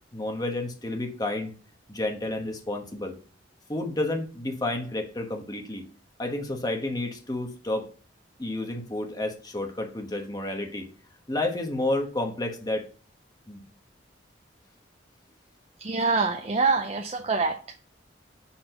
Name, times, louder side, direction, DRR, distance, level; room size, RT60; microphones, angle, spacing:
voice 1, 0.1-1.5 1.9-3.2 3.7-5.8 6.2-7.9 8.4-10.9 11.3-12.9 13.5-13.6, left 2 dB, 20° left, 1.2 m, -30 dB
voice 2, 15.8-17.8, right 4 dB, 35° right, 0.6 m, -25 dB
6.1 x 4.3 x 5.5 m
head